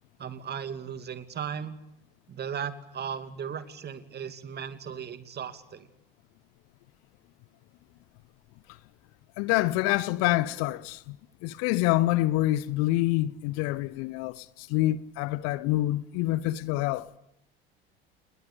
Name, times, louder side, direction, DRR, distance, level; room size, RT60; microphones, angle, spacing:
voice 1, 0.2-1.8 2.3-5.9, right 7 dB, 35° right, 2.8 m, -36 dB
voice 2, 9.4-11.2 11.4-17.1, left 16 dB, 55° left, 1.1 m, -26 dB
29.0 x 20.5 x 8.6 m
figure-of-eight pair, 65°, 29 cm